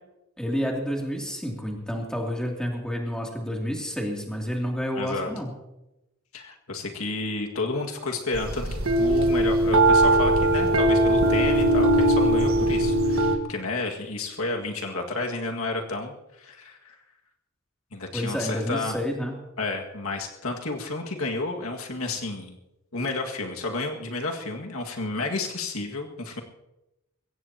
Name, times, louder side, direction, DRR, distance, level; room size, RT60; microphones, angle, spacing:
voice 1, 0.4-5.5 18.1-19.3, equal, 5° left, -1 dB, 2.8 m, -29 dB
voice 2, 4.9-5.3 6.3-17.0 17.9-19.0 19.6-22.6 22.9-26.4, left 3 dB, 85° left, 2 dB, 2.0 m, -31 dB
sound 1, 8.3-13.4, right 1 dB, 75° right, 1.5 m, -20 dB
22.5 x 17.0 x 2.9 m, 0.95 s
head